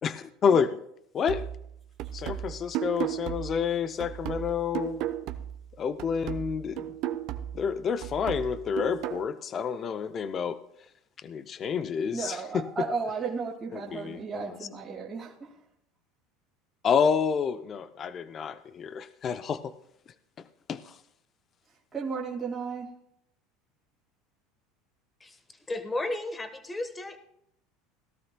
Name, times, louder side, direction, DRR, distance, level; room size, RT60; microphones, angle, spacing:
voice 1, 0.0-0.8 1.1-1.5 2.1-5.1 5.8-6.9 7.5-10.6 11.2-12.7 13.7-14.6 16.8-19.7 20.7-21.0, left 6 dB, 35° left, 12 dB, 0.5 m, -29 dB
sound 1, 1.3-5.7 6.0-9.3, right 12 dB, 60° right, 0.7 m, -35 dB
voice 2, 12.1-15.5 21.9-22.9, right 5 dB, 25° right, -4 dB, 2.0 m, -34 dB
voice 3, 25.7-27.2, left 2 dB, 15° left, 8 dB, 1.3 m, -33 dB
17.5 x 12.5 x 2.2 m, 0.75 s
supercardioid pair, 115°, 0 cm